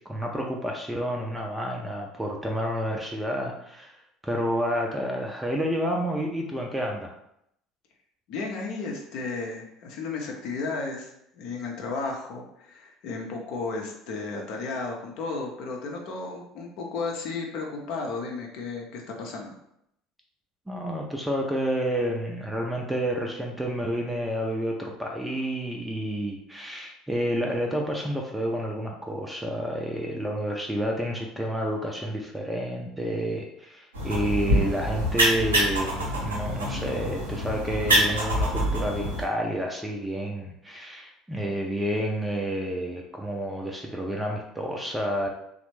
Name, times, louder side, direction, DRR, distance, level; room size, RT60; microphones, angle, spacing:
voice 1, 0.1-4.0 4.2-7.1 20.7-45.3, equal, 5° right, 0 dB, 0.5 m, -29 dB
voice 2, 8.3-19.5, left 3 dB, 60° left, 1 dB, 0.6 m, -34 dB
sound 1, 33.9-39.2, equal, 80° right, 0.6 m, -25 dB
3.2 x 2.1 x 3.1 m, 0.76 s
figure-of-eight pair, 65°, 0 cm